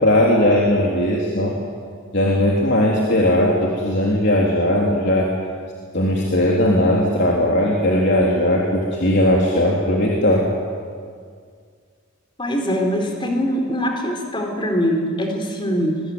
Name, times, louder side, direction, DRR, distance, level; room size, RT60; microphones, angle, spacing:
voice 1, 0.0-1.5 2.1-5.3 5.9-10.4, left 1 dB, 50° left, -3 dB, 3.7 m, -18 dB
voice 2, 12.4-16.0, equal, 20° left, 3 dB, 3.9 m, -22 dB
27.0 x 22.5 x 9.7 m, 2.1 s
head